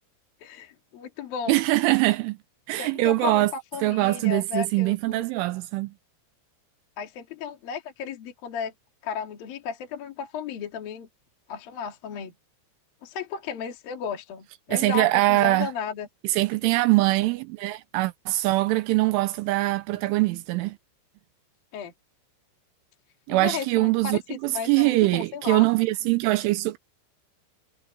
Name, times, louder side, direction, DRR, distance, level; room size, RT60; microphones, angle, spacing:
voice 1, 0.4-1.6 2.8-5.3 7.0-8.7 9.0-11.1 11.5-12.3 13.0-16.1 21.7-21.9 23.3-25.7, left 7 dB, 50° left, 3.8 m, -34 dB
voice 2, 1.5-2.4 2.7-3.5 3.8-5.9 14.7-15.7 16.2-20.8 23.3-26.8, right 19 dB, 80° right, 3.0 m, -23 dB
omnidirectional pair, 6.0 m